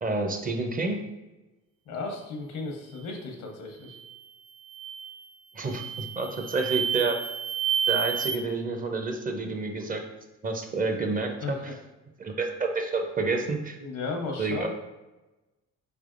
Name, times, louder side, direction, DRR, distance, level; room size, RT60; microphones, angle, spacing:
voice 1, 0.0-1.0 5.5-7.2 7.9-10.0 10.4-11.6 12.2-13.8 14.4-14.7, right 3 dB, 30° right, 4 dB, 0.5 m, -29 dB
voice 2, 1.9-4.0 6.2-6.3 11.4-11.7 13.8-14.7, left 3 dB, 90° left, 2 dB, 0.9 m, -35 dB
sound 1, 3.9-4.2 4.7-5.2 5.7-8.3, right 8 dB, 70° right, 1.3 m, -30 dB
4.2 x 3.3 x 2.4 m, 1.1 s
cardioid pair, 90°, 30 cm